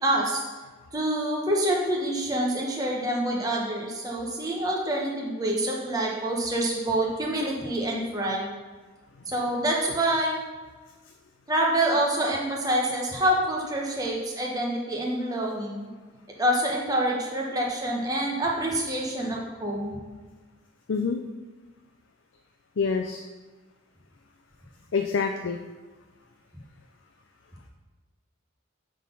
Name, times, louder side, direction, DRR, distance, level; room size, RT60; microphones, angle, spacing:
voice 1, 0.0-0.4 0.9-8.5 9.3-10.3 11.5-15.9 16.4-20.0, right 1 dB, 15° right, -2 dB, 1.2 m, -26 dB
voice 2, 20.9-21.2 22.8-23.2 24.9-25.6, left 5 dB, 65° left, 5 dB, 0.4 m, -26 dB
7.5 x 4.1 x 5.3 m, 1.3 s
head